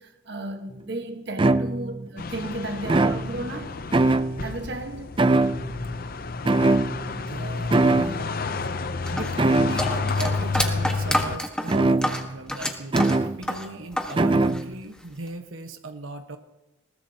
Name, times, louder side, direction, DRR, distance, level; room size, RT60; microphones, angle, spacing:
voice 1, 0.0-3.8 4.4-5.1 13.7-13.9, right 1 dB, 55° right, 1.3 m, -34 dB
sound 1, 0.7-0.8 1.4-2.1 2.8-3.6 3.9-4.6 5.2-5.9 6.5-7.3 7.7-8.2 9.4-10.0 11.7-12.4 12.9-13.4 14.2-14.7, right 2 dB, 25° right, 0.4 m, -22 dB
sound 2, 2.2-11.4, left 4 dB, 45° left, 0.6 m, -30 dB
voice 2, 6.6-8.3 9.1-16.4, right 2 dB, 90° right, 1.2 m, -38 dB
sound 3, 9.1-14.2 14.4-15.3, left 1 dB, 5° left, 1.4 m, -28 dB
21.0 x 19.5 x 2.9 m
head